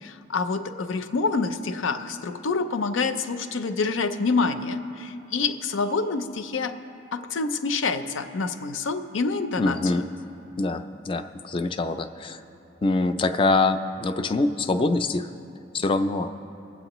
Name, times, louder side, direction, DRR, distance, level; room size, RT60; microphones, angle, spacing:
voice 1, 0.0-6.8 7.1-9.9, left 4 dB, 85° left, 10 dB, 0.5 m, -27 dB
voice 2, 9.6-10.1 10.6-12.4 12.8-15.3 15.7-16.3, left 3 dB, 25° left, 9 dB, 0.3 m, -24 dB
22.5 x 7.9 x 3.0 m, 2.8 s
head